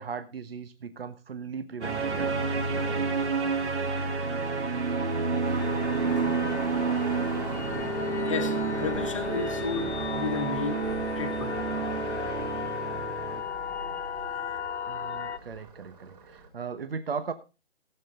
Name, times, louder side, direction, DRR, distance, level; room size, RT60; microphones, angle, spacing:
voice 1, 0.0-2.3 2.8-3.1 14.9-17.3, right 5 dB, 55° right, 1.2 m, -37 dB
sound 1, 1.8-13.4, right 4 dB, 75° right, 3.4 m, -30 dB
sound 2, 5.4-16.5, right 3 dB, 35° right, 3.9 m, -43 dB
sound 3, 5.6-15.4, left 7 dB, 70° left, 0.9 m, -35 dB
voice 2, 8.3-10.9 11.1-11.6 12.3-12.5, left 5 dB, 25° left, 1.4 m, -33 dB
16.5 x 8.1 x 3.9 m
hypercardioid pair, 175°, 35 cm